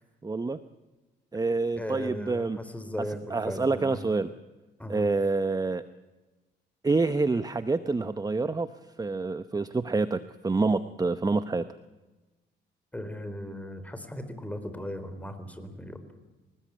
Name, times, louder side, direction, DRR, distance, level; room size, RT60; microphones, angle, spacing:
voice 1, 0.2-0.6 1.3-2.6 3.0-4.3 4.9-5.8 6.8-8.7 9.0-11.6, right 3 dB, 20° right, 12 dB, 0.9 m, -27 dB
voice 2, 1.7-4.0 4.8-5.1 12.9-16.0, equal, 5° left, 9 dB, 4.3 m, -37 dB
25.5 x 19.5 x 8.6 m, 1.1 s
cardioid pair, 90°, 20 cm